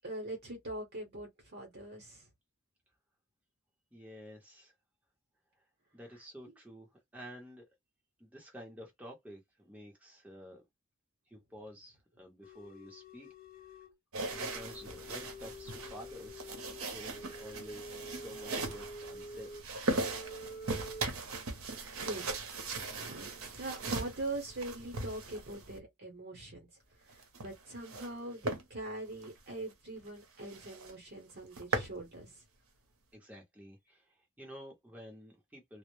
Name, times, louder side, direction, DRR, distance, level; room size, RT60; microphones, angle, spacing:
voice 1, 0.0-2.3 22.0-22.3 23.0-26.7 27.0-32.3, right 2 dB, 50° right, 0.8 m, -42 dB
voice 2, 3.9-4.7 5.9-6.9 7.1-7.6 8.2-10.6 11.3-13.3 14.3-16.5 16.8-19.5 33.1-35.8, equal, 5° right, 0.7 m, -51 dB
sound 1, 12.4-13.9 14.3-19.7 20.0-21.0, equal, 40° left, 0.5 m, -48 dB
sound 2, 14.1-25.8 27.1-28.1 28.4-28.6 29.1-29.3 29.7-29.8 30.1-30.2 30.5-30.9 31.3-32.0, right 3 dB, 75° right, 0.7 m, -39 dB
2.0 x 2.0 x 3.0 m
head